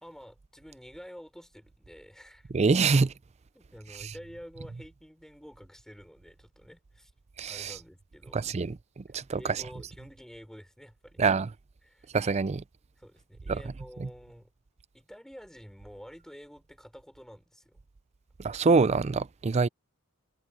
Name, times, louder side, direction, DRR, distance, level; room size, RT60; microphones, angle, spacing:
voice 1, 0.0-2.5 3.5-7.1 7.5-8.5 9.3-11.3 11.8-12.1 13.0-14.5 14.9-17.8, equal, ahead, 3.8 m, -49 dB
voice 2, 2.5-3.1 7.4-7.7 8.3-9.6 11.2-11.5 12.1-12.6 13.5-13.6 14.0-14.1 18.4-19.7, right 4 dB, 30° right, 0.4 m, -25 dB
head